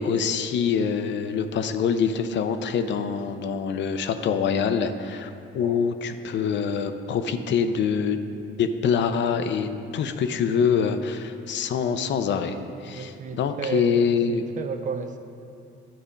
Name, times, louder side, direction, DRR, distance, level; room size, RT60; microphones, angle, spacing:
voice 1, 0.0-8.2 8.5-12.6 12.8-14.4, left 6 dB, 65° left, 9 dB, 0.5 m, -25 dB
voice 2, 12.9-15.2, right 5 dB, 40° right, 8 dB, 0.5 m, -32 dB
10.5 x 4.2 x 5.1 m, 2.6 s
cardioid pair, 90°, 20 cm